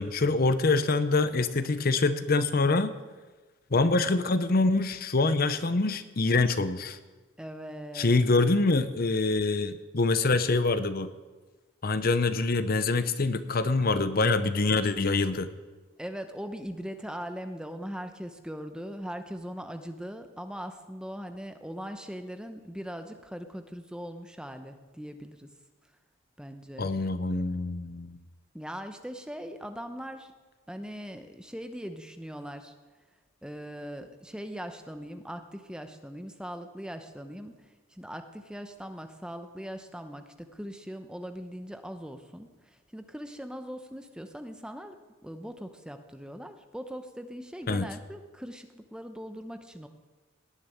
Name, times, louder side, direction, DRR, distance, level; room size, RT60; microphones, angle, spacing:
voice 1, 0.0-2.9 3.7-7.0 7.9-11.1 11.8-15.5 26.8-28.2 47.7-47.9, left 3 dB, 45° left, 12 dB, 0.6 m, -25 dB
voice 2, 7.4-8.2 16.0-25.5 26.4-26.9 28.5-30.3 30.7-32.7 33.4-45.0 45.2-49.9, equal, 5° right, 7 dB, 0.8 m, -40 dB
18.5 x 6.9 x 9.1 m, 1.3 s
head